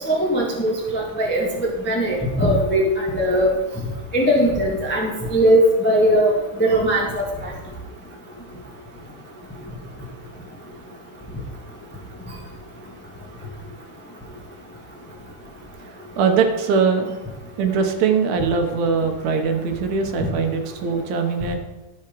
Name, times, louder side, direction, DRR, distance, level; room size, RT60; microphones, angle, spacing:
voice 1, 0.1-3.5 4.1-6.3 6.6-7.2, equal, 10° left, -2 dB, 0.4 m, -19 dB
voice 2, 15.8-17.2 17.6-21.6, right 5 dB, 70° right, 5 dB, 2.2 m, -21 dB
13.0 x 5.7 x 5.2 m, 1.1 s
omnidirectional pair, 3.7 m